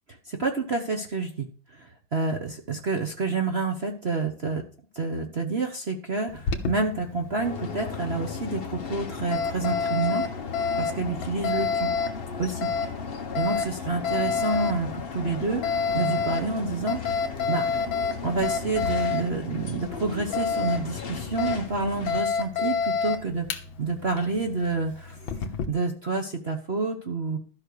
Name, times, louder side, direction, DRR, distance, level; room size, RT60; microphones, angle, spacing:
voice 1, 0.2-4.6 4.9-10.2 10.8-11.9 12.4-12.7 13.3-17.2 17.5-17.7 18.2-23.5 23.8-27.4, right 3 dB, 40° right, 3 dB, 1.1 m, -29 dB
Alarm, 6.3-25.7, left 5 dB, 70° left, 1.9 m, -30 dB
sound 1, 7.4-22.2, left 5 dB, 35° left, 1.1 m, -36 dB
13.0 x 5.5 x 6.7 m, 0.42 s
omnidirectional pair, 2.2 m